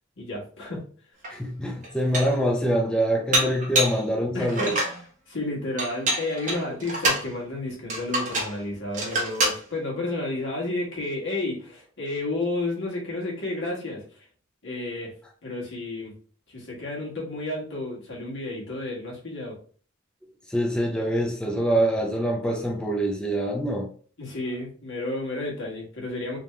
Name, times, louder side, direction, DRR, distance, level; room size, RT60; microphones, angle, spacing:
voice 1, 0.2-0.8 4.3-14.0 14.6-15.1 15.4-16.1 16.5-19.5 24.2-26.4, left 2 dB, 65° left, 1.5 m, -31 dB
Dishes pots and pans, 1.2-1.3 1.8-2.4 3.3-4.0 4.5-5.0 5.8-7.3 7.9-8.6 8.9-9.6, right 1 dB, 40° right, 1.1 m, -26 dB
voice 2, 1.3-4.8 20.5-23.9, equal, 5° left, 0.5 m, -25 dB
3.5 x 2.9 x 3.2 m
head